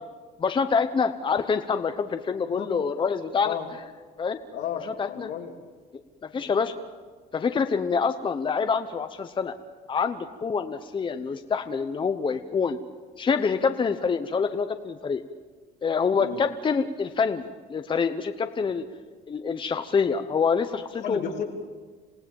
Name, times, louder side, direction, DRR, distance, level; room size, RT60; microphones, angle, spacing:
voice 1, 0.4-3.6 4.2-4.4 5.0-5.3 6.3-6.7 7.3-9.5 9.9-12.8 13.2-15.2 15.8-18.8 19.3-21.2, left 5 dB, 30° left, 8 dB, 0.9 m, -26 dB
voice 2, 4.5-5.5 6.3-6.6 16.2-16.4 21.0-21.4, left 8 dB, 80° left, 1 dB, 3.4 m, -33 dB
27.5 x 17.0 x 7.1 m, 1.5 s
cardioid pair, 110°, 17 cm